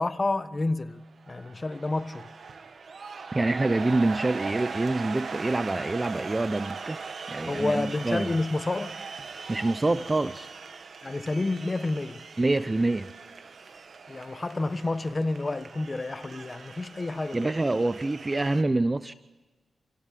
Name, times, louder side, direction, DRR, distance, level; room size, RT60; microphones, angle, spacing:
voice 1, 0.0-2.3 7.5-9.0 11.0-12.2 14.1-17.5, left 2 dB, 30° left, 1.3 m, -29 dB
sound 1, 1.0-18.6, right 5 dB, 60° right, 1.8 m, -40 dB
voice 2, 3.3-7.0 7.3-8.3 9.5-10.5 12.4-13.1 17.3-19.1, right 2 dB, 25° right, 0.8 m, -26 dB
28.5 x 17.0 x 8.5 m
cardioid pair, 65°, 0 cm